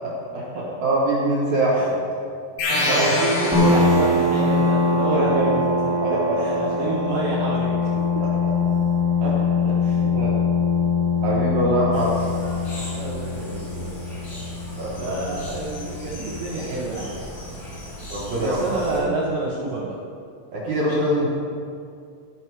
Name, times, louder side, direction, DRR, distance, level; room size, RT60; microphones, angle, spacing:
voice 1, 0.0-1.9 2.9-3.0 5.1-5.5 6.0-6.9 8.2-8.5 9.2-9.8 10.0-10.3 11.2-12.2 14.8-15.4 18.1-19.1 20.5-21.3, right 1 dB, 65° right, -7 dB, 1.9 m, -24 dB
sound 1, 2.6-4.5, left 1 dB, 85° left, 3.9 m, -24 dB
voice 2, 2.9-5.7 6.4-7.9 9.8-10.0 13.0-14.0 15.0-17.1 18.4-20.0, right 2 dB, 85° right, -4 dB, 1.8 m, -28 dB
sound 2, 3.5-16.8, left 3 dB, 5° right, 0.7 m, -23 dB
sound 3, 11.9-19.0, equal, 55° left, 1.4 m, -38 dB
16.0 x 5.9 x 4.7 m, 2.4 s
omnidirectional pair, 5.5 m